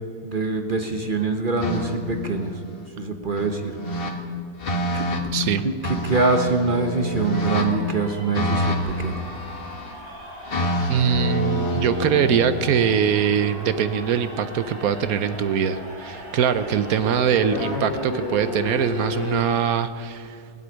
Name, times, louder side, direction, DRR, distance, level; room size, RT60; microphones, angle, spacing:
voice 1, 0.2-2.6 3.0-4.0 4.9-5.2 5.6-9.3, right 3 dB, 40° right, 5 dB, 0.8 m, -24 dB
sound 1, 1.6-2.9 3.4-4.1 4.6-5.2 5.8-7.7 8.3-9.9 10.5-14.6 17.0-19.4, left 1 dB, 35° left, 1.4 m, -28 dB
voice 2, 5.3-5.6 10.9-20.4, right 8 dB, 65° right, 12 dB, 1.0 m, -22 dB
sound 2, 7.3-19.6, equal, 85° right, 5.2 m, -40 dB
17.0 x 8.1 x 10.0 m, 2.3 s
omnidirectional pair, 2.0 m